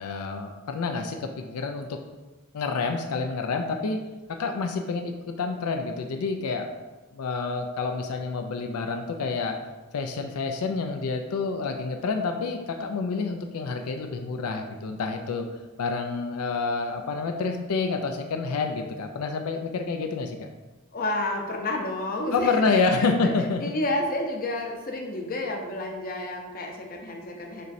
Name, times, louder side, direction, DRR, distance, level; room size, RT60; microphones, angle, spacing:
voice 1, 0.0-2.0 2.5-4.0 4.3-6.7 7.1-9.6 9.9-15.5 15.8-20.5 22.3-23.6, left 4 dB, 85° left, 4 dB, 0.4 m, -28 dB
voice 2, 20.9-23.3 23.6-27.7, left 1 dB, 40° left, 2 dB, 0.6 m, -30 dB
6.5 x 3.1 x 2.6 m, 1.2 s
head